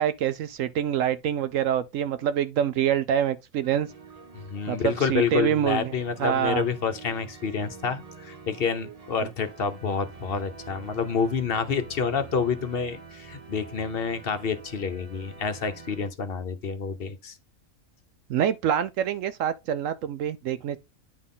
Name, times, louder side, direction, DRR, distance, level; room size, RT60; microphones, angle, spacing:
voice 1, 0.0-3.9 4.7-5.9 6.2-6.6 18.3-20.8, right 9 dB, 70° right, 0.9 m, -26 dB
sound 1, 3.6-16.1, right 4 dB, 30° right, 0.9 m, -46 dB
voice 2, 4.3-17.4, left 5 dB, 50° left, 1.0 m, -28 dB
9.8 x 4.0 x 3.7 m
omnidirectional pair, 1.4 m